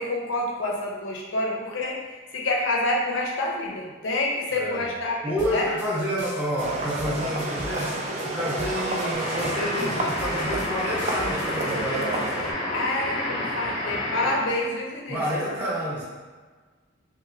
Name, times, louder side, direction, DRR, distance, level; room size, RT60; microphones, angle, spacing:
voice 1, 0.0-2.0 2.3-5.7 12.7-15.2, left 2 dB, 80° left, -1 dB, 0.6 m, -27 dB
voice 2, 4.5-4.9 5.2-7.9 8.2-12.1 15.1-16.0, equal, 10° right, -8 dB, 0.8 m, -29 dB
sound 1, 5.4-11.7, left 1 dB, 80° right, 1.3 m, -39 dB
sound 2, 6.6-12.5, right 1 dB, 35° right, 0.3 m, -30 dB
sound 3, 9.1-14.6, left 1 dB, 25° left, 0.6 m, -30 dB
3.0 x 2.1 x 2.7 m, 1.4 s
head